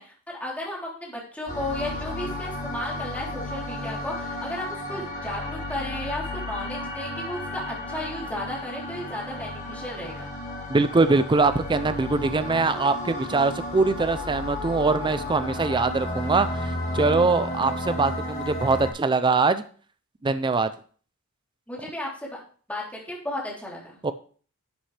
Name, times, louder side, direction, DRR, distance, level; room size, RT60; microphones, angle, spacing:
voice 1, 0.0-10.3 21.7-22.4 22.7-24.0, left 1 dB, 5° left, -4 dB, 3.4 m, -34 dB
sound 1, 1.5-18.9, left 1 dB, 40° left, 4.0 m, -33 dB
voice 2, 10.7-19.6 20.2-20.7 24.0-24.1, right 3 dB, 20° right, 11 dB, 0.5 m, -23 dB
11.5 x 8.1 x 3.3 m, 0.42 s
head